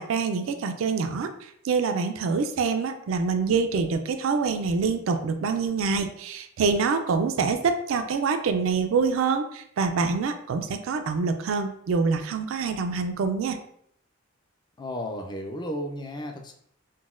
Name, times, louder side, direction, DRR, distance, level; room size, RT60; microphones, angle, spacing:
voice 1, 0.0-13.6, right 5 dB, 70° right, 7 dB, 0.3 m, -26 dB
voice 2, 14.8-16.5, equal, 20° left, 4 dB, 0.4 m, -33 dB
3.9 x 2.1 x 2.4 m, 0.69 s
head